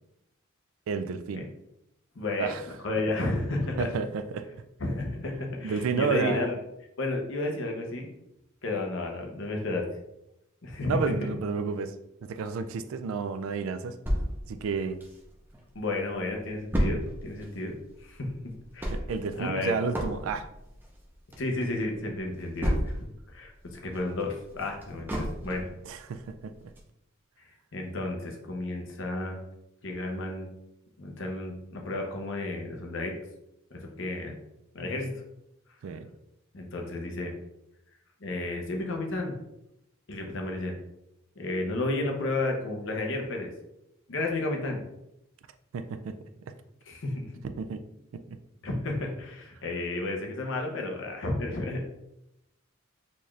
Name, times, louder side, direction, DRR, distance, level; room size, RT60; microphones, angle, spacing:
voice 1, 0.9-1.5 2.4-2.6 3.8-4.6 5.6-6.5 10.9-11.9 12.2-14.0 14.5-15.0 18.9-20.5 25.9-26.5 35.8-36.1 45.7-46.2 47.6-47.8 48.1-48.4, right 5 dB, 70° right, 10 dB, 0.3 m, -31 dB
voice 2, 2.1-3.9 4.8-6.5 7.0-8.1 8.6-9.9 10.6-11.0 15.7-18.3 18.7-19.0 19.3-19.8 21.4-25.7 27.7-29.4 29.8-30.5 31.0-33.1 33.7-34.3 34.7-35.1 36.5-37.3 38.2-39.3 40.1-40.7 41.4-43.5 44.1-44.8 46.9-47.3 48.6-51.8, left 2 dB, 65° left, 2 dB, 0.8 m, -32 dB
sound 1, 14.1-15.6 16.0-16.1 16.3-23.3 23.7-25.8 26.3-26.4 26.8-26.9, equal, 10° right, 0.5 m, -32 dB
4.0 x 2.4 x 3.2 m, 0.84 s
head